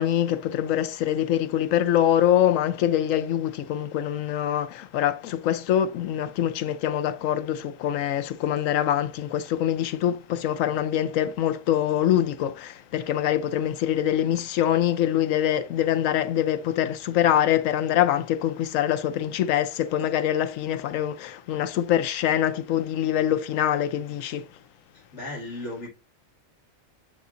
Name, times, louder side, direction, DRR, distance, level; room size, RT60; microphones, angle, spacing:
voice 1, 0.0-24.4, left 11 dB, 75° left, 1.0 m, -24 dB
voice 2, 25.1-25.9, left 2 dB, 55° left, 2.5 m, -35 dB
7.3 x 6.0 x 2.5 m
omnidirectional pair, 1.4 m